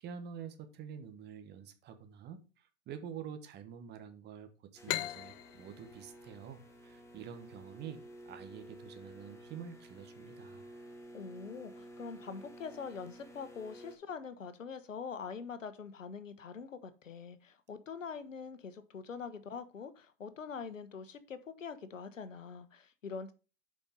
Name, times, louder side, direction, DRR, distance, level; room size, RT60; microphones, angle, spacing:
voice 1, 0.0-10.7, right 8 dB, 25° right, 1.3 m, -47 dB
sound 1, 4.8-14.0, right 1 dB, 5° left, 1.7 m, -52 dB
sound 2, 4.9-8.3, left 14 dB, 50° left, 0.7 m, -41 dB
voice 2, 11.1-23.3, left 6 dB, 90° left, 1.2 m, -44 dB
7.1 x 5.3 x 5.3 m
hypercardioid pair, 115°, 37 cm